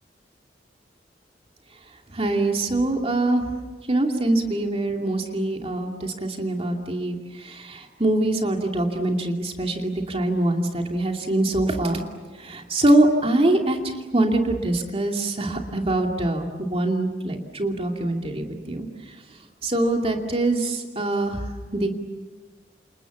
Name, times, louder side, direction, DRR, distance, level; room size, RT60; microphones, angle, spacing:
voice 1, 2.1-3.4 3.9-12.0 12.4-13.8 14.1-18.9 19.6-21.4 21.7-21.9, right 2 dB, 35° right, 2 dB, 2.5 m, -23 dB
29.0 x 28.5 x 7.2 m, 1.3 s
head